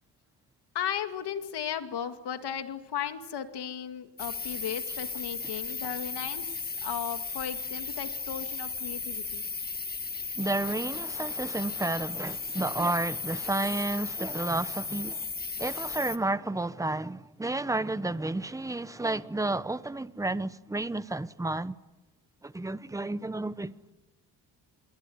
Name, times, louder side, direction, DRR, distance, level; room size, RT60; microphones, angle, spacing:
voice 1, 0.7-6.5 6.8-9.5, left 8 dB, 75° left, 2.4 m, -35 dB
sound 1, 4.2-16.2, left 4 dB, 25° left, 1.6 m, -35 dB
voice 2, 10.4-15.2 15.6-21.8 22.4-23.7, right 2 dB, 10° right, 0.9 m, -31 dB
26.5 x 23.0 x 9.6 m
cardioid pair, 110°, 40 cm